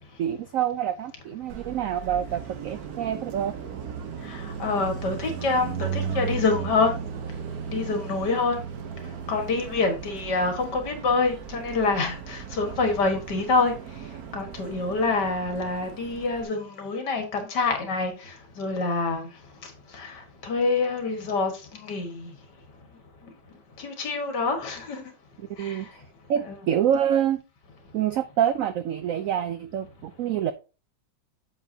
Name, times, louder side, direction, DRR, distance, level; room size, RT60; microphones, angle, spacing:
voice 1, 0.2-3.5 25.4-26.0 26.3-27.4 27.9-30.5, right 10 dB, 80° right, 0.7 m, -26 dB
Car passing by, 1.5-16.4, right 7 dB, 60° right, 1.3 m, -36 dB
voice 2, 4.2-6.9 7.7-8.6 9.3-13.7 14.3-19.3 19.9-22.3 23.8-25.1 25.6-25.8, left 3 dB, 65° left, 2.2 m, -26 dB
8.0 x 7.1 x 2.8 m
omnidirectional pair, 2.0 m